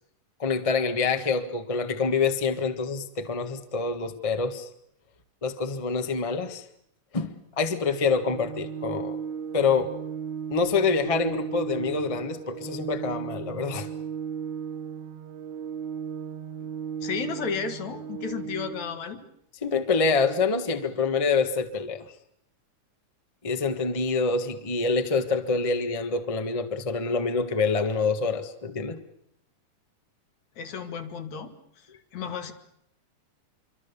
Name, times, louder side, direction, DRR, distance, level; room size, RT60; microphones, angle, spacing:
voice 1, 0.4-4.7 5.4-6.6 7.1-9.2 9.5-9.9 10.5-13.9 19.6-22.0 23.4-29.0, left 4 dB, 30° left, 7 dB, 0.5 m, -26 dB
Organ, 8.1-19.1, right 7 dB, 70° right, 2.3 m, -36 dB
voice 2, 17.0-19.2 30.6-32.5, left 6 dB, 70° left, 7 dB, 3.0 m, -33 dB
26.5 x 24.5 x 7.1 m, 0.72 s
omnidirectional pair, 3.5 m